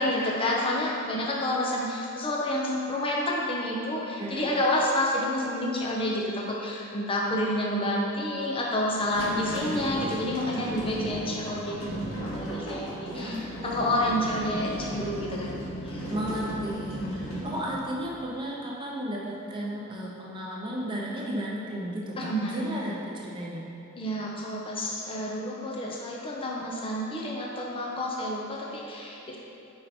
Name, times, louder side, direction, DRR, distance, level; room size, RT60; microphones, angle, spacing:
voice 1, 0.0-16.1 17.0-17.4 22.2-22.6 24.0-29.4, left 1 dB, 25° left, -3 dB, 0.6 m, -29 dB
voice 2, 4.2-4.5 9.3-9.8 13.1-14.1 16.1-23.7, equal, 25° right, -4 dB, 0.7 m, -34 dB
sound 1, 8.9-18.4, equal, 90° left, 1.4 m, -36 dB
5.5 x 4.5 x 4.2 m, 2.8 s
head